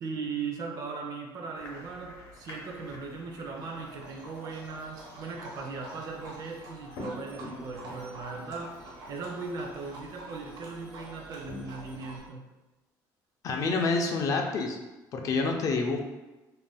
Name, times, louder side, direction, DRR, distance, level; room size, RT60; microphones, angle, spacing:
voice 1, 0.0-8.8 9.1-12.5, right 4 dB, 50° right, 2 dB, 0.4 m, -38 dB
sound 1, 1.5-12.3, left 2 dB, 85° left, 0.7 m, -49 dB
Livestock farm animals working animals, 3.6-12.2, right 1 dB, 80° right, 0.9 m, -47 dB
voice 2, 13.4-14.8 15.1-16.0, left 3 dB, 45° left, 2 dB, 0.4 m, -27 dB
2.5 x 2.2 x 3.3 m, 1.1 s
cardioid pair, 135°, 8 cm